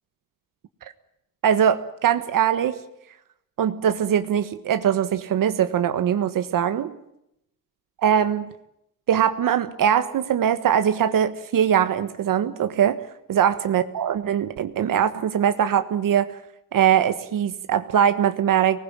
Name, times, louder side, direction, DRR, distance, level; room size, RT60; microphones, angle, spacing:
voice 1, 1.4-2.8 3.6-6.9 8.0-8.5 9.1-13.0 13.3-16.3 16.7-18.8, right 9 dB, 70° right, 10 dB, 1.5 m, -21 dB
25.5 x 20.0 x 8.8 m, 0.81 s
cardioid pair, 150°, 35 cm